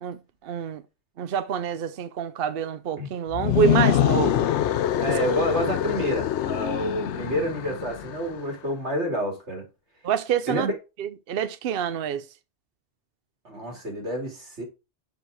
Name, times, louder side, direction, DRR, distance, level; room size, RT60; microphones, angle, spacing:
voice 1, 0.0-0.8 1.2-4.4 10.0-10.7 11.0-12.3, right 8 dB, 65° right, 0.7 m, -27 dB
sound 1, 3.3-8.3, left 11 dB, 80° left, 0.9 m, -25 dB
voice 2, 5.0-9.6 10.5-10.7 13.4-14.6, equal, 80° right, 2.8 m, -28 dB
6.3 x 4.9 x 4.8 m
omnidirectional pair, 1.2 m